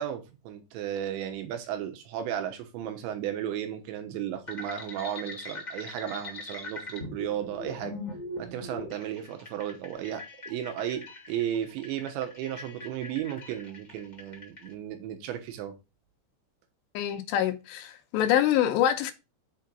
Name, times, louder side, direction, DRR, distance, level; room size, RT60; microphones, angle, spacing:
voice 1, 0.0-7.9 8.4-15.7, right 10 dB, 80° right, 3.4 m, -34 dB
sound 1, 4.5-14.7, left 2 dB, 30° left, 0.7 m, -42 dB
voice 2, 16.9-19.1, left 11 dB, 80° left, 2.9 m, -25 dB
7.5 x 4.5 x 5.3 m
omnidirectional pair, 5.3 m